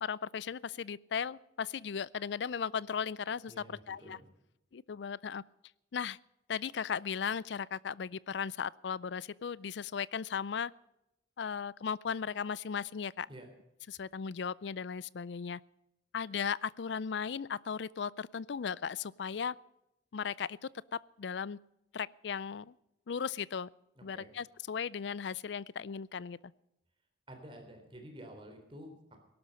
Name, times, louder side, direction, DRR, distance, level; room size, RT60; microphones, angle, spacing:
voice 1, 0.0-4.2 4.7-5.4 5.9-6.2 6.5-10.7 11.4-13.3 13.9-15.6 16.1-19.6 20.1-20.6 20.9-21.6 21.9-22.7 23.1-23.7 24.0-26.4, left 6 dB, 75° left, 22 dB, 0.4 m, -36 dB
voice 2, 3.5-4.3 13.3-13.5 24.0-24.3 27.3-29.2, equal, 30° right, 3 dB, 3.8 m, -50 dB
17.5 x 12.0 x 5.4 m, 0.86 s
head